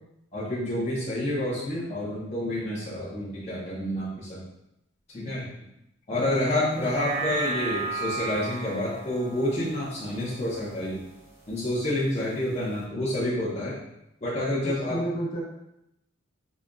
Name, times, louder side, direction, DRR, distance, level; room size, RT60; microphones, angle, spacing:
voice 1, 0.3-4.4 5.1-5.5 6.1-11.0 11.5-13.8 14.2-15.0, left 1 dB, 30° left, -9 dB, 0.7 m, -28 dB
voice 2, 0.9-1.4 6.1-6.3 6.6-7.2 10.2-10.3 14.6-15.4, right 1 dB, 60° left, -6 dB, 1.2 m, -34 dB
sound 1, 6.7-11.3 11.7-11.8, right 4 dB, 10° right, 0.6 m, -35 dB
4.9 x 2.5 x 2.2 m, 0.84 s
head